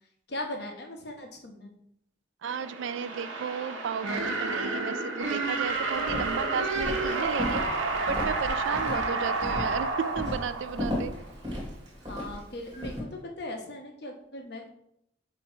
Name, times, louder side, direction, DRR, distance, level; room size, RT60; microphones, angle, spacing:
voice 1, 0.3-1.7 8.8-9.2 12.0-14.7, left 1 dB, 55° left, 2 dB, 1.1 m, -39 dB
voice 2, 2.4-7.6 8.1-11.1, right 7 dB, 75° right, 14 dB, 0.3 m, -34 dB
sound 1, 2.4-11.3, right 3 dB, 90° right, 1.1 m, -30 dB
Walk footsteps, 6.0-13.0, left 1 dB, 20° right, 2.2 m, -36 dB
6.9 x 3.1 x 4.5 m, 0.75 s
head